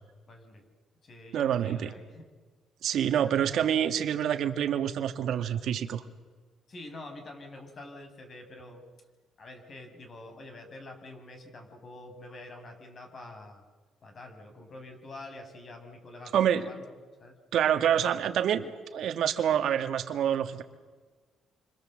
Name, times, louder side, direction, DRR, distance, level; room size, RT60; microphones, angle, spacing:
voice 1, 0.3-0.6 1.0-2.3 6.7-8.8 9.4-13.6 14.0-17.4, left 2 dB, 40° left, 5 dB, 6.3 m, -46 dB
voice 2, 1.3-1.9 2.8-6.0 16.3-16.7 17.5-20.6, right 9 dB, 70° right, 7 dB, 2.0 m, -27 dB
29.0 x 26.0 x 7.8 m, 1.4 s
cardioid pair, 125°, 0 cm